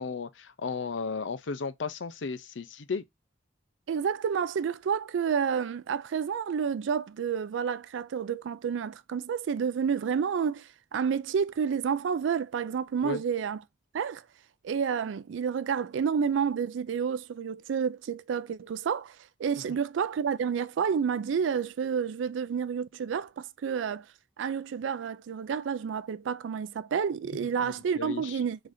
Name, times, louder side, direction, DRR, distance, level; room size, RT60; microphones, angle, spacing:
voice 1, 0.0-3.0 13.0-13.2 19.7-19.8 27.3-28.4, left 4 dB, 85° left, 0.6 m, -35 dB
voice 2, 3.9-13.6 13.9-14.2 14.6-19.1 19.4-24.0 24.4-28.6, right 7 dB, 85° right, 0.3 m, -30 dB
3.9 x 2.6 x 4.7 m
head